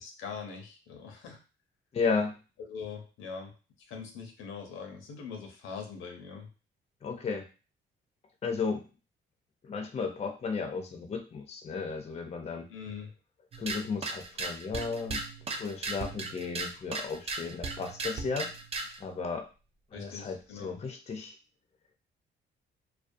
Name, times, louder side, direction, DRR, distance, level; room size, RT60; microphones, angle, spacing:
voice 1, 0.0-1.4 2.7-3.5 3.9-6.5 12.7-13.1 19.9-20.8, left 6 dB, 90° left, 4 dB, 0.6 m, -42 dB
voice 2, 1.9-2.3 7.0-7.4 8.4-8.8 9.6-12.7 13.6-15.2 15.6-18.5 19.0-19.5 19.9-21.4, left 5 dB, 35° left, 5 dB, 0.5 m, -34 dB
sound 1, 13.5-19.0, right 3 dB, 30° right, 0.4 m, -37 dB
2.3 x 2.2 x 2.6 m, 0.33 s
cardioid pair, 90°, 20 cm